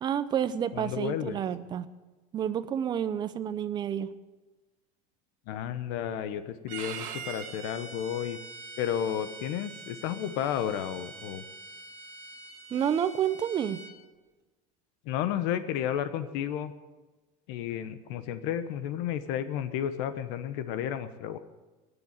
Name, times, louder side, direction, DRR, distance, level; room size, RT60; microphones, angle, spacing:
voice 1, 0.0-1.9 2.3-4.1 12.7-13.8, right 9 dB, 25° right, 12 dB, 0.7 m, -29 dB
voice 2, 0.7-1.4 5.5-8.4 8.8-11.4 15.1-16.7 17.5-21.4, left 10 dB, 70° left, 11 dB, 1.0 m, -32 dB
Bowed string instrument, 6.7-13.9, right 5 dB, 50° right, 1.8 m, -44 dB
17.5 x 7.0 x 10.0 m, 1.2 s
cardioid pair, 165°, 17 cm